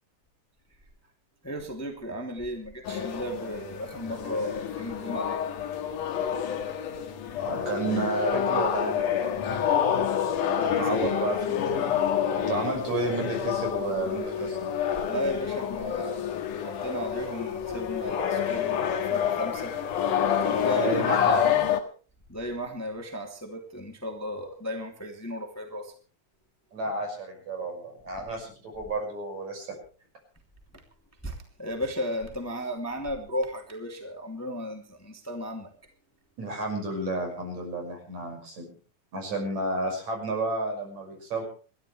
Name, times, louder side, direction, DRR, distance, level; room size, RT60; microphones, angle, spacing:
voice 1, 1.4-5.4 10.6-11.2 12.4-13.2 15.0-19.7 20.4-21.4 22.3-25.9 31.2-35.7, equal, 5° left, 2 dB, 2.4 m, -35 dB
sound 1, 2.9-21.8, left 8 dB, 85° left, 3.2 m, -28 dB
voice 2, 7.5-9.4 10.6-12.0 12.4-14.7 20.8-21.7 26.7-29.7 36.4-38.7 39.1-41.4, right 2 dB, 60° right, 2 dB, 7.2 m, -31 dB
29.0 x 13.0 x 3.3 m, 0.39 s
omnidirectional pair, 3.6 m